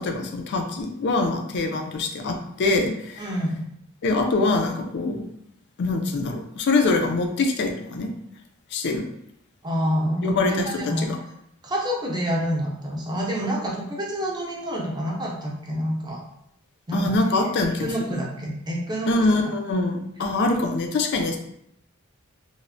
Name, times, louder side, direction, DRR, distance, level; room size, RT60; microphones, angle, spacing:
voice 1, 0.0-3.3 4.0-5.2 5.8-8.1 8.7-9.0 10.2-10.7 11.0-11.2 16.9-18.2 19.1-21.4, left 3 dB, 55° left, 4 dB, 0.4 m, -24 dB
voice 2, 3.2-3.6 9.6-11.1 11.6-16.2 16.9-17.2 17.8-19.1, equal, 20° right, -2 dB, 0.5 m, -27 dB
3.1 x 2.1 x 2.5 m, 0.75 s
head